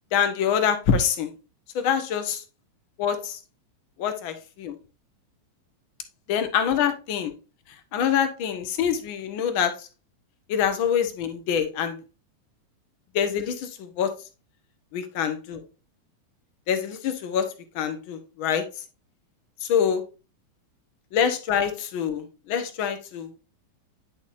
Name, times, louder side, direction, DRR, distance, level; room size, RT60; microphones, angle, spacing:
voice 1, 0.1-1.3 1.7-2.4 3.0-3.4 4.0-4.8 6.3-7.3 7.9-9.9 10.5-12.0 13.1-14.1 14.9-15.6 16.7-17.5 17.7-18.6 19.6-20.0 21.1-23.4, left 8 dB, 45° left, 9 dB, 1.0 m, -25 dB
10.5 x 4.2 x 2.6 m, 0.31 s
figure-of-eight pair, 90°, 0 cm